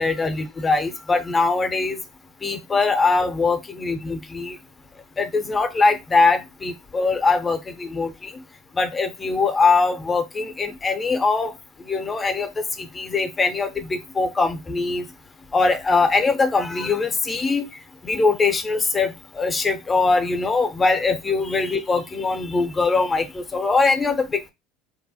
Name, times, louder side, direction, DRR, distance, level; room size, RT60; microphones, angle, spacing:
voice 1, 0.0-2.0 2.4-4.6 5.2-8.3 8.7-11.5 11.8-15.1 15.5-17.7 18.0-24.5, left 4 dB, 25° left, 9 dB, 0.5 m, -22 dB
2.7 x 2.1 x 2.7 m, 0.22 s
hypercardioid pair, 70°, 0 cm